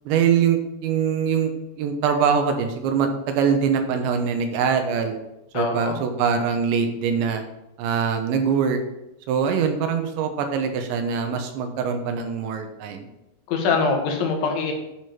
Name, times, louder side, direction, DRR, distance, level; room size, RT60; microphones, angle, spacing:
voice 1, 0.1-1.5 1.8-5.2 5.5-7.4 7.8-8.8 9.3-13.1, right 7 dB, 80° right, 6 dB, 3.3 m, -23 dB
voice 2, 5.5-6.0 13.5-14.7, left 4 dB, 90° left, 2 dB, 3.9 m, -23 dB
11.0 x 5.2 x 5.8 m, 0.91 s
omnidirectional pair, 5.1 m